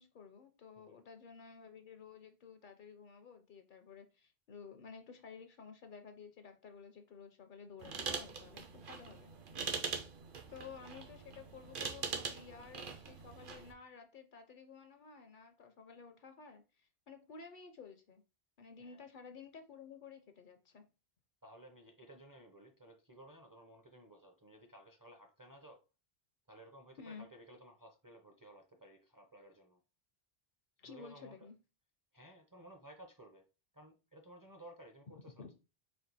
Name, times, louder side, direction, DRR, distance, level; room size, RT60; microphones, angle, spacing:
voice 1, 0.0-9.3 10.5-18.2 18.6-20.9 27.0-27.3 30.8-31.6 35.4-35.5, left 5 dB, 60° left, 0.6 m, -53 dB
sound 1, 7.8-13.7, right 5 dB, 60° right, 0.8 m, -42 dB
voice 2, 21.4-25.8 26.5-29.8 30.8-31.4 32.1-33.4 33.7-35.5, right 1 dB, 25° right, 0.5 m, -57 dB
4.4 x 2.4 x 4.0 m
omnidirectional pair, 1.1 m